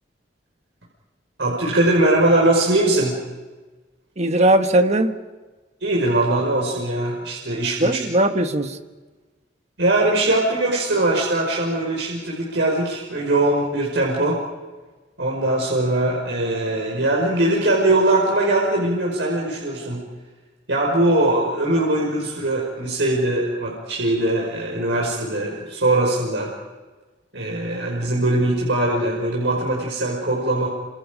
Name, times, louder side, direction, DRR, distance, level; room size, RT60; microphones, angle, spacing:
voice 1, 1.4-3.2 5.8-8.0 9.8-14.4 15.2-20.0 20.7-26.5 27.3-30.7, right 2 dB, 80° right, 5.4 m, -21 dB
voice 2, 4.2-5.2 7.8-8.8, right 1 dB, 40° right, 1.4 m, -19 dB
28.5 x 26.5 x 5.1 m
head